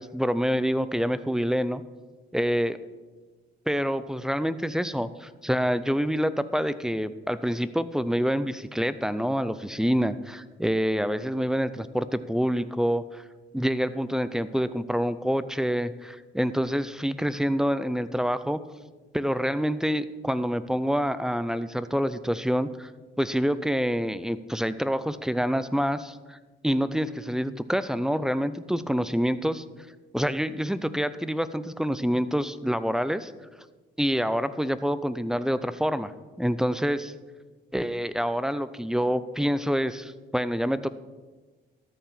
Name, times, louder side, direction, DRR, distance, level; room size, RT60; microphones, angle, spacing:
voice 1, 0.0-1.8 2.3-2.8 3.7-13.2 13.5-18.6 19.1-22.9 23.2-26.4 26.6-29.6 30.1-33.3 34.0-36.1 36.4-37.1 37.7-40.9, equal, 5° right, 14 dB, 0.5 m, -27 dB
13.0 x 4.8 x 7.2 m, 1.3 s
cardioid pair, 90°, 20 cm